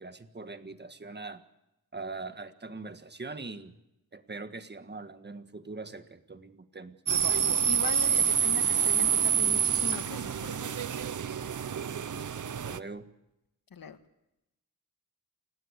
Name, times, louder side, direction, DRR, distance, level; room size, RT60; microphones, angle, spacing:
voice 1, 0.0-1.4 1.9-3.7 4.1-7.0 12.1-13.1, right 3 dB, 30° right, 9 dB, 1.6 m, -42 dB
sound 1, 7.1-12.8, right 8 dB, 60° right, 0.8 m, -27 dB
voice 2, 7.6-11.0 13.7-14.0, left 5 dB, 85° left, 9 dB, 1.7 m, -40 dB
29.0 x 17.0 x 8.2 m, 0.90 s
wide cardioid pair, 105°, 34 cm